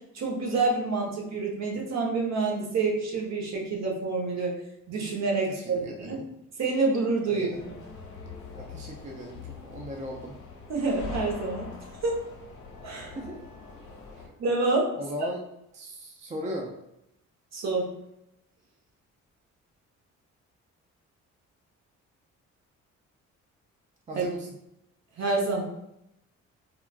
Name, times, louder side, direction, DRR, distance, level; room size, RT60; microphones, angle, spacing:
voice 1, 0.1-4.6 4.9-6.2 6.6-7.8 10.7-11.7 12.0-12.2 12.8-13.2 14.4-14.9 17.5-17.9 24.1-24.2 25.2-25.6, right 3 dB, 60° right, -1 dB, 1.0 m, -27 dB
voice 2, 5.5-6.3 7.3-7.6 8.5-10.4 13.2-13.4 15.0-15.4 15.7-16.7 24.1-24.5, equal, 25° right, 1 dB, 0.5 m, -37 dB
sound 1, 7.5-14.3, left 4 dB, 85° left, 1.1 m, -43 dB
4.4 x 2.3 x 2.4 m, 0.81 s
cardioid pair, 90°, 30 cm